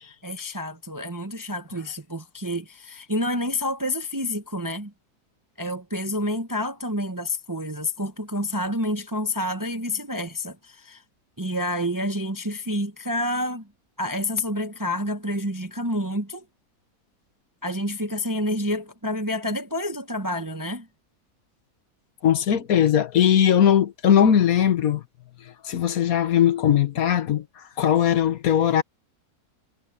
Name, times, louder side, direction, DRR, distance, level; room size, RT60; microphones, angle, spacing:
voice 1, 0.0-4.9 5.6-11.0 11.4-13.7 14.0-16.4 17.6-20.9, left 1 dB, 15° right, 0.7 m, -28 dB
voice 2, 22.2-25.0 25.6-28.8, left 9 dB, 65° left, 1.4 m, -19 dB
omnidirectional pair, 1.6 m